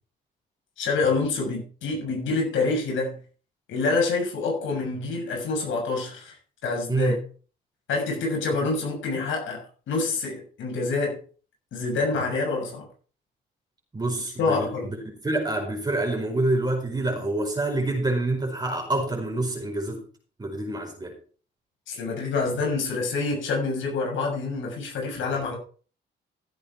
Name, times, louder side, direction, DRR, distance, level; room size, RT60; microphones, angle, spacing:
voice 1, 0.8-3.2 3.7-6.3 6.6-7.2 7.9-11.2 11.7-12.9 14.4-14.9 21.9-25.6, left 3 dB, 75° left, 6.7 m, -27 dB
voice 2, 6.9-7.2 8.6-8.7 13.9-15.0 15.2-20.0 20.4-21.1, right 2 dB, 20° right, 4.9 m, -27 dB
15.0 x 8.4 x 4.8 m
cardioid pair, 90°, 20 cm